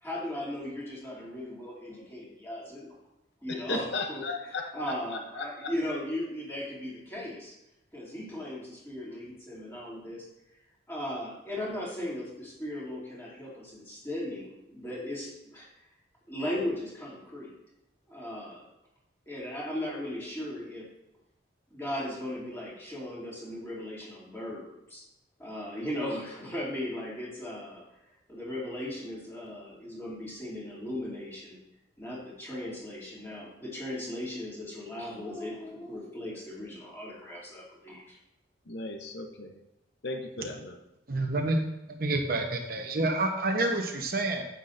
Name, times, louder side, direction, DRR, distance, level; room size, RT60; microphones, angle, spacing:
voice 1, 0.0-2.9 3.4-7.5 7.9-10.3 10.9-15.7 16.3-17.5 18.1-18.7 19.3-20.9 21.7-25.0 25.4-27.8 28.3-31.6 32.0-38.2, left 1 dB, 10° left, -7 dB, 2.7 m, -37 dB
voice 2, 3.7-5.0 5.4-5.7 38.7-39.6 40.0-40.8, left 2 dB, 65° left, 4 dB, 0.8 m, -35 dB
voice 3, 41.1-41.6 41.9-44.4, right 2 dB, 50° right, 3 dB, 0.9 m, -28 dB
9.5 x 8.3 x 2.6 m, 0.89 s
head